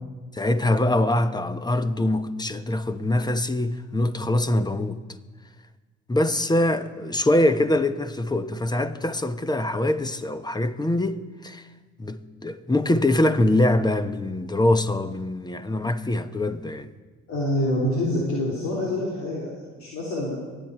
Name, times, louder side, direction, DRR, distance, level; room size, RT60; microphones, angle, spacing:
voice 1, 0.3-5.0 6.1-11.6 12.0-16.9, left 1 dB, 15° left, 1.0 m, -23 dB
voice 2, 17.3-20.4, left 1 dB, 70° left, 2.9 m, -26 dB
24.0 x 9.2 x 4.6 m
supercardioid pair, 65°, 29 cm